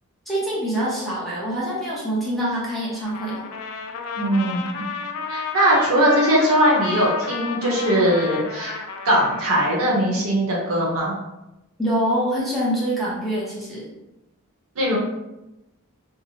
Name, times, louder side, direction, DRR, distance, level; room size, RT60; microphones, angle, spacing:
voice 1, 0.3-3.4 11.8-13.9, equal, ahead, -7 dB, 0.6 m, -25 dB
Trumpet, 3.0-9.6, left 5 dB, 70° left, 0.3 m, -31 dB
voice 2, 4.2-4.9 5.3-8.8 9.0-11.1 14.8-15.0, equal, 65° right, -3 dB, 0.8 m, -20 dB
2.7 x 2.0 x 2.7 m, 0.96 s
head